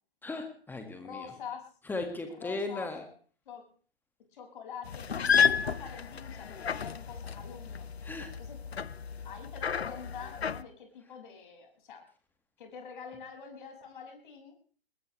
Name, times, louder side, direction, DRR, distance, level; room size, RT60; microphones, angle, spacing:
voice 1, 0.2-1.3 1.9-3.1 8.0-8.3, left 3 dB, 5° left, 5 dB, 1.9 m, -37 dB
voice 2, 1.0-1.7 2.4-2.9 3.5-3.6 4.3-7.9 8.4-8.6 9.2-12.0 12.6-14.5, left 6 dB, 50° left, 2 dB, 6.4 m, -45 dB
sound 1, 4.8-10.6, left 7 dB, 75° left, 1.0 m, -31 dB
21.0 x 20.5 x 3.3 m, 0.43 s
figure-of-eight pair, 130°, 32 cm